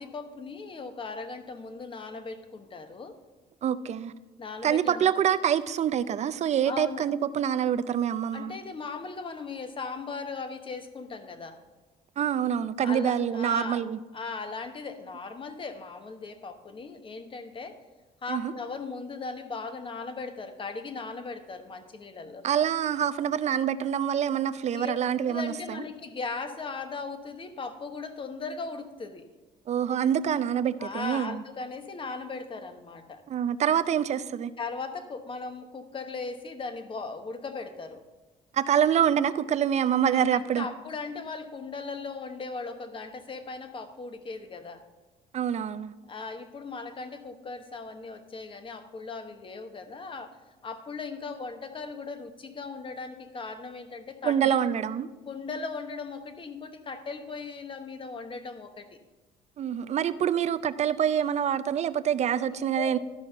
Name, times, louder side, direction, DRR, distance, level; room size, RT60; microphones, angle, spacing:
voice 1, 0.0-3.2 4.4-5.1 6.6-7.0 8.3-11.6 12.8-13.8 14.1-17.8 18.2-22.4 24.7-25.0 25.3-29.3 30.8-33.2 34.6-38.0 40.1-44.8 46.1-50.4 50.6-54.6 55.3-59.0 62.5-63.0, left 4 dB, 30° left, 8 dB, 1.0 m, -38 dB
voice 2, 3.6-4.1 4.6-8.5 12.2-14.0 18.3-18.5 22.4-25.8 29.7-31.4 33.3-34.5 38.5-40.7 45.3-45.9 54.2-55.1 59.6-63.0, right 9 dB, 40° right, 13 dB, 0.5 m, -26 dB
12.5 x 5.6 x 5.5 m, 1.2 s
cardioid pair, 110°, 17 cm